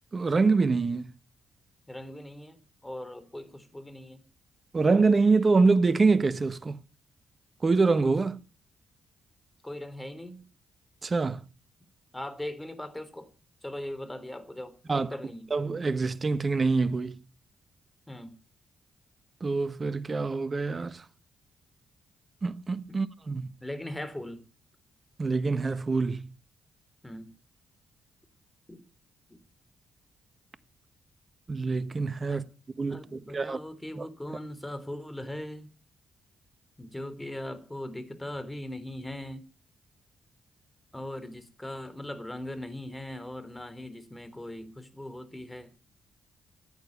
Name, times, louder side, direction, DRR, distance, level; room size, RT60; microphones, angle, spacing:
voice 1, 0.1-1.1 4.7-6.8 7.6-8.4 11.0-11.4 14.9-15.1 15.5-17.2 19.4-21.0 22.4-23.5 25.2-26.3 31.5-32.4 32.8-33.6 34.0-34.1, right 4 dB, 40° right, 1.2 m, -25 dB
voice 2, 1.9-4.2 9.6-10.4 12.1-13.3 13.6-15.5 18.1-18.4 22.9-23.0 23.6-24.4 27.0-27.3 28.7-28.8 29.3-29.4 32.3-32.4 32.9-35.7 36.8-39.4 40.9-45.7, left 1 dB, 10° left, 3.7 m, -39 dB
14.5 x 9.3 x 8.3 m
hypercardioid pair, 45°, 0 cm